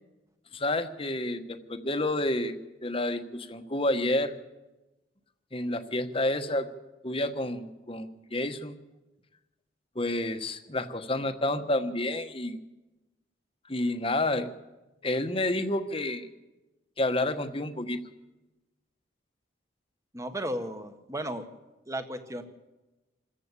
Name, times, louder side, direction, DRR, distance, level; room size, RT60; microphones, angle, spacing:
voice 1, 0.5-4.3 5.5-6.7 7.0-8.7 9.9-12.6 13.7-14.5 15.0-16.3 17.0-18.0, left 1 dB, 30° left, 8 dB, 1.3 m, -29 dB
voice 2, 20.1-21.4 21.9-22.4, right 1 dB, 15° right, 8 dB, 1.5 m, -34 dB
27.0 x 14.5 x 8.4 m, 1.1 s
head